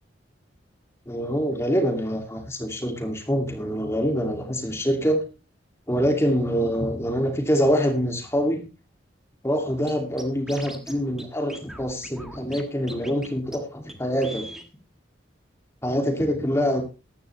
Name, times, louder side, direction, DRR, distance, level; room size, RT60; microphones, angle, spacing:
voice 1, 1.1-5.2 5.9-8.6 9.4-14.4 15.8-16.8, equal, 15° left, 3 dB, 2.5 m, -25 dB
Scratching (performance technique), 9.9-10.0 10.2-10.9 11.2-11.3 11.5-12.6 12.9-13.3 13.5-13.6 13.9-14.0 14.2-14.7, equal, ahead, 1.5 m, -39 dB
14.5 x 11.5 x 3.3 m, 0.31 s
head